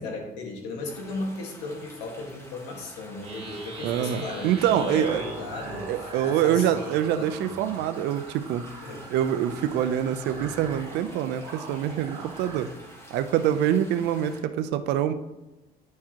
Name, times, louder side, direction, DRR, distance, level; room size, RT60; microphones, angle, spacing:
voice 1, 0.0-6.9 7.2-7.7 8.8-9.1, left 2 dB, 90° left, 1 dB, 1.7 m, -36 dB
sound 1, 0.9-14.4, equal, 15° left, 1.4 m, -49 dB
sound 2, 3.2-12.7, right 3 dB, 35° right, 1.8 m, -41 dB
voice 2, 3.8-5.2 5.9-8.7 9.1-12.7 13.1-15.1, right 10 dB, 85° right, 10 dB, 0.5 m, -25 dB
10.5 x 4.7 x 2.9 m, 1.0 s
cardioid pair, 110°, 17 cm